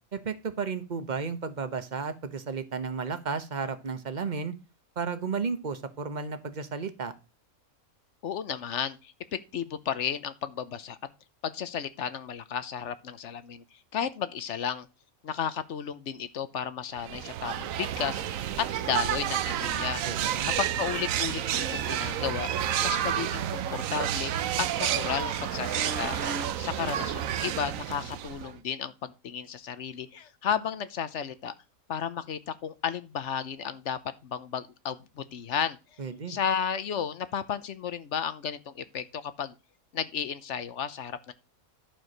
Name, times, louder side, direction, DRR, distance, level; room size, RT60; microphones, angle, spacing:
voice 1, 0.1-4.6 5.0-7.1 20.0-20.5 36.0-36.4, right 5 dB, 35° right, 1.0 m, -33 dB
voice 2, 8.2-11.0 11.4-14.9 15.2-20.0 20.4-22.5 22.8-24.3 24.6-26.2 26.6-31.5 31.9-39.5 39.9-41.3, left 8 dB, 60° left, 1.1 m, -33 dB
sound 1, 17.0-28.6, right 10 dB, 70° right, 1.1 m, -30 dB
Truck, 23.2-26.5, right 4 dB, 90° right, 1.8 m, -39 dB
11.5 x 4.6 x 6.5 m
omnidirectional pair, 1.5 m